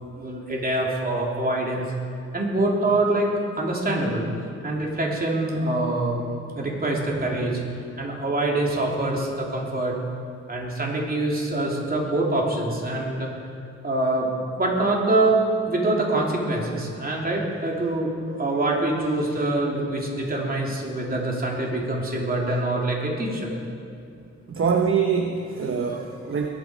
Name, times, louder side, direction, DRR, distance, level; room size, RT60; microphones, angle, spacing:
voice 1, 0.1-1.9 2.3-4.3 4.6-6.2 6.5-7.6 8.0-10.0 10.5-13.3 13.8-14.3 14.6-23.7 25.9-26.4, right 2 dB, 30° right, -2 dB, 3.2 m, -25 dB
voice 2, 24.5-26.5, right 6 dB, 50° right, 3 dB, 1.0 m, -24 dB
21.5 x 9.6 x 5.1 m, 2.6 s
cardioid pair, 95°, 29 cm